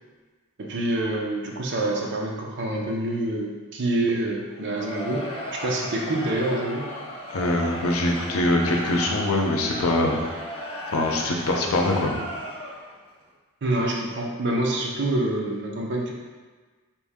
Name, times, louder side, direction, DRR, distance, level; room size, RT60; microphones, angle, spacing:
voice 1, 0.6-6.9 13.6-16.1, right 1 dB, 55° right, -1 dB, 0.7 m, -26 dB
Crowd, 4.5-13.0, left 1 dB, 25° left, 0.6 m, -35 dB
voice 2, 7.3-10.2 10.9-12.2, left 1 dB, 80° left, 1 dB, 0.7 m, -23 dB
4.4 x 2.7 x 3.6 m, 1.4 s
head